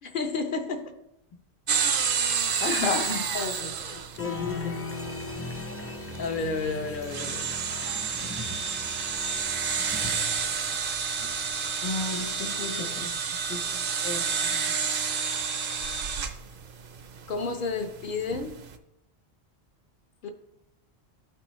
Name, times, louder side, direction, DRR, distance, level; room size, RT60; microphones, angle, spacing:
voice 1, 0.0-0.9 3.3-4.8 6.2-7.5 17.3-18.6 20.2-20.3, left 4 dB, 55° left, 5 dB, 0.8 m, -32 dB
sound 1, 1.7-18.8, right 6 dB, 60° right, 0.7 m, -31 dB
voice 2, 2.6-3.3 11.8-13.2 13.5-13.7 14.0-14.6, left 4 dB, 80° left, 4 dB, 1.2 m, -32 dB
Applause, 4.1-12.5, left 2 dB, 20° left, 0.4 m, -39 dB
13.0 x 4.5 x 3.1 m, 0.84 s
omnidirectional pair, 1.1 m